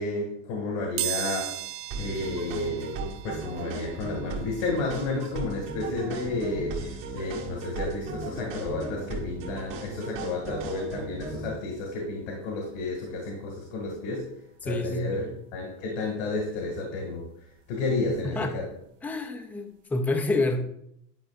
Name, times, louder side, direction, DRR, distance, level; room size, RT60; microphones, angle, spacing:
voice 1, 0.0-14.3 14.6-15.3 15.5-17.3 17.7-18.7, left 2 dB, 90° left, 0 dB, 1.9 m, -31 dB
sound 1, 1.0-11.6 12.1-12.2 13.4-13.5 13.7-15.8 16.2-18.8 19.2-19.4 19.7-19.8, right 13 dB, 85° right, 0.8 m, -40 dB
sound 2, 1.9-11.5, right 3 dB, 55° right, 1.7 m, -37 dB
voice 2, 14.6-15.4 18.1-18.6 19.0-20.6, left 2 dB, 5° left, 5 dB, 0.3 m, -28 dB
10.5 x 5.4 x 2.4 m, 0.74 s
supercardioid pair, 145°, 36 cm